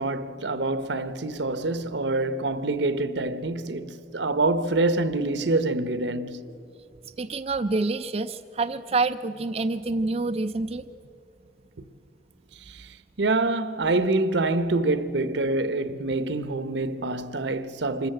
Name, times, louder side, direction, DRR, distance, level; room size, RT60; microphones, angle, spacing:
voice 1, 0.0-6.4 12.7-18.1, right 2 dB, 70° right, 0.9 m, -26 dB
voice 2, 7.2-10.8, right 3 dB, 35° right, 0.4 m, -27 dB
25.5 x 14.0 x 7.7 m
head